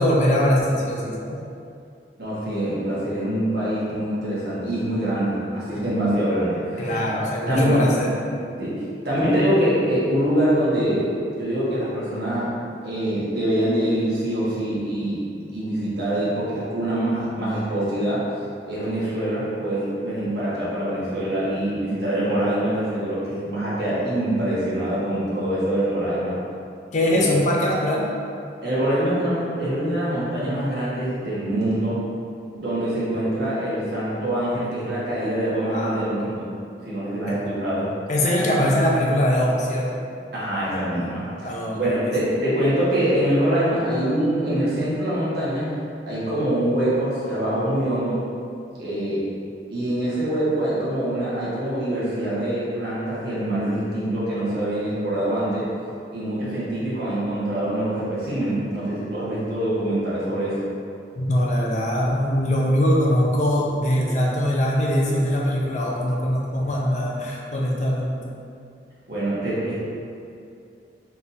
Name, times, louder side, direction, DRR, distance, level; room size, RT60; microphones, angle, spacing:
voice 1, 0.0-1.4 6.8-8.1 26.9-28.1 35.7-36.4 37.3-37.4 38.1-39.9 41.4-42.2 61.1-68.2, equal, 40° left, -3 dB, 0.6 m, -22 dB
voice 2, 2.2-7.8 8.1-8.3 8.6-8.7 9.0-11.1 11.4-12.5 12.8-15.2 15.5-18.2 18.6-26.4 27.1-27.2 28.6-32.0 32.5-36.5 36.8-37.9 40.3-45.8 46.1-48.2 48.8-49.2 49.7-55.7 56.1-60.6 69.1-69.7, right 1 dB, 60° right, -9 dB, 1.4 m, -24 dB
4.1 x 3.6 x 2.7 m, 2.4 s
head